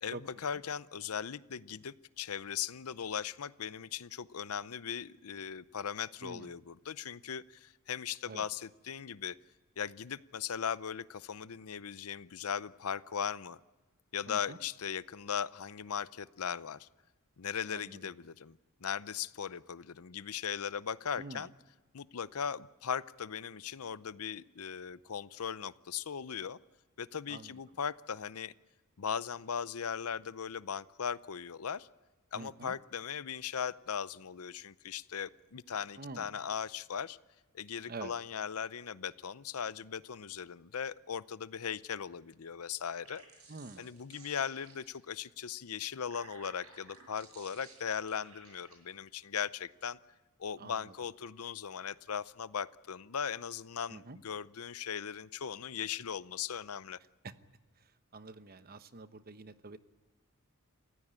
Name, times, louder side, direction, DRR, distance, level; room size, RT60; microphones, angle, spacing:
voice 1, 0.0-9.4 9.8-13.6 14.1-16.9 17.4-21.5 21.9-26.6 27.0-28.5 29.0-31.9 32.3-37.2 37.5-43.2 43.8-50.0 50.4-57.0, left 7 dB, 80° left, 17 dB, 0.6 m, -38 dB
voice 2, 6.2-6.5 8.3-8.5 14.3-14.6 17.7-18.0 21.2-21.5 27.3-27.6 32.3-32.8 36.0-36.3 37.9-38.1 43.5-43.9 50.6-50.9 53.9-54.2 57.2-57.3 57.8-59.8, right 3 dB, 45° right, 12 dB, 0.9 m, -47 dB
sound 1, 42.9-45.1 45.8-48.8, right 4 dB, 70° right, 7.4 m, -57 dB
28.0 x 16.0 x 8.8 m, 1.3 s
head